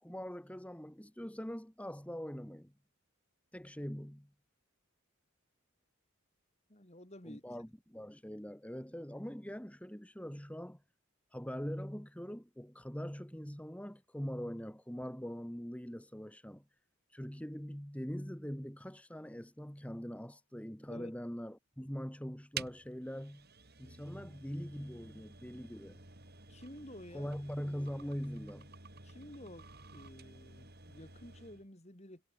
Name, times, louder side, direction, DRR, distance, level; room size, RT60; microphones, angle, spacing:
voice 1, 0.0-2.7 3.5-4.3 7.2-10.8 11.3-16.6 17.1-23.5 23.8-26.0 27.1-28.7, equal, 5° left, 1.4 m, -42 dB
voice 2, 6.7-7.4 20.9-21.1 26.5-27.3 29.0-32.2, left 1 dB, 30° left, 3.7 m, -51 dB
sound 1, 22.5-31.7, right 6 dB, 45° right, 5.5 m, -51 dB
head